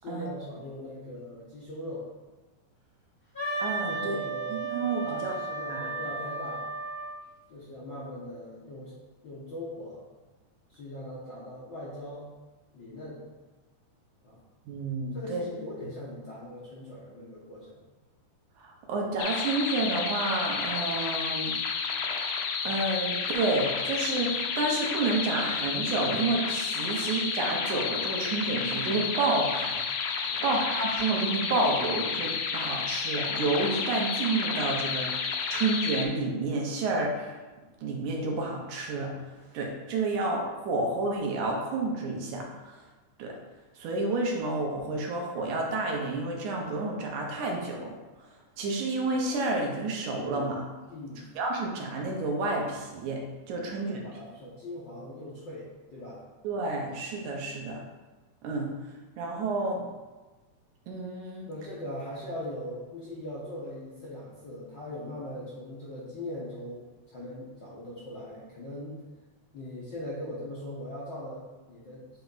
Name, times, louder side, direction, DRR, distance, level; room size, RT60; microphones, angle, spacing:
voice 1, 0.0-2.1 3.9-4.6 5.0-6.7 7.5-8.9 9.2-10.0 10.7-12.3 12.7-13.2 14.2-14.4 15.1-17.8 30.2-30.5 50.9-51.3 53.7-56.2 61.5-69.0 69.5-72.1, left 1 dB, 55° left, -7 dB, 1.3 m, -40 dB
Wind instrument woodwind instrument, 3.3-7.2, right 3 dB, 15° left, 1.9 m, -34 dB
voice 2, 3.6-4.2 4.5-5.3 5.7-5.9 14.7-15.4 18.6-21.5 22.6-29.8 30.4-37.4 37.8-39.1 39.5-42.8 43.2-43.4 43.8-48.0 48.6-50.6 51.4-54.1 56.4-57.8 58.4-58.7 59.2-59.9 60.9-61.5, right 2 dB, 80° right, 0 dB, 2.5 m, -30 dB
sound 1, 19.2-36.0, left 5 dB, 80° left, 2.1 m, -31 dB
8.2 x 3.4 x 4.0 m, 1.2 s
omnidirectional pair, 3.5 m